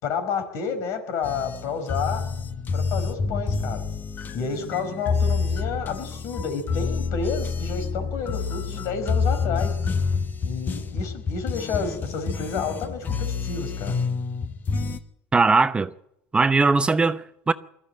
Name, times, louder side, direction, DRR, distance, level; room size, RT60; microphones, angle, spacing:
voice 1, 0.0-2.3 2.7-3.8 4.3-9.8 10.4-14.0, left 5 dB, 60° left, 5.0 m, -30 dB
sound 1, 1.2-15.0, left 5 dB, 35° left, 1.5 m, -28 dB
voice 2, 15.3-15.9 16.3-17.5, right 4 dB, 20° right, 0.8 m, -20 dB
20.5 x 14.0 x 8.9 m
supercardioid pair, 100°, 6 cm